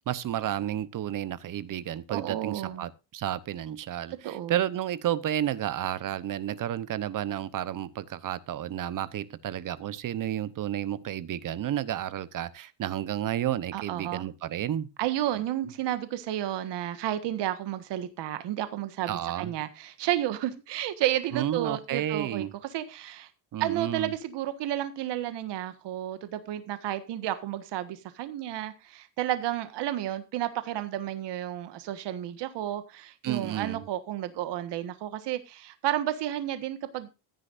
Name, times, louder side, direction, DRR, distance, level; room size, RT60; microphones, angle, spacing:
voice 1, 0.1-14.9 19.1-19.5 21.3-22.5 23.5-24.1 33.2-33.8, right 11 dB, 45° right, 0.9 m, -31 dB
voice 2, 2.1-2.9 4.2-4.6 13.7-14.3 15.0-22.4 22.7-23.3 23.6-37.1, right 12 dB, 70° right, 1.6 m, -32 dB
14.5 x 10.0 x 2.5 m
cardioid pair, 160°, 43 cm